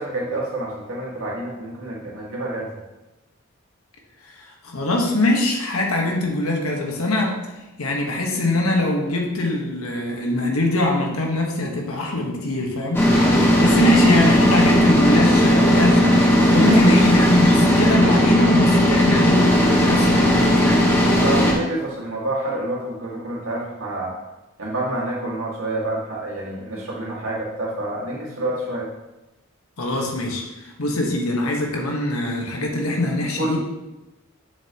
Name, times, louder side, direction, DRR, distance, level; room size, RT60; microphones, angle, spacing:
voice 1, 0.0-2.7 13.5-13.8 16.4-17.0 21.0-24.2 24.6-28.9 33.4-33.6, right 1 dB, 75° right, -4 dB, 2.1 m, -28 dB
voice 2, 4.2-7.4 7.8-13.1 13.6-19.6 19.8-20.9 29.8-33.6, left 1 dB, 85° left, 0 dB, 1.3 m, -22 dB
sound 1, 12.9-21.5, equal, 10° left, 1.2 m, -16 dB
7.2 x 6.9 x 3.0 m, 1.0 s
head